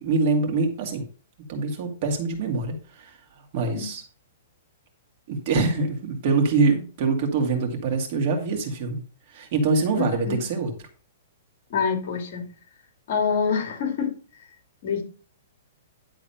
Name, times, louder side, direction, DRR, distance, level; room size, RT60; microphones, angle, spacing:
voice 1, 0.0-1.0 1.5-3.2 3.5-4.0 5.3-9.0 9.3-10.7, right 4 dB, 40° right, 2 dB, 2.2 m, -24 dB
voice 2, 9.9-10.4 11.7-12.5 13.1-14.1 14.8-15.0, left 6 dB, 45° left, 4 dB, 2.2 m, -26 dB
10.5 x 3.9 x 5.6 m, 0.38 s
hypercardioid pair, 165°, 0 cm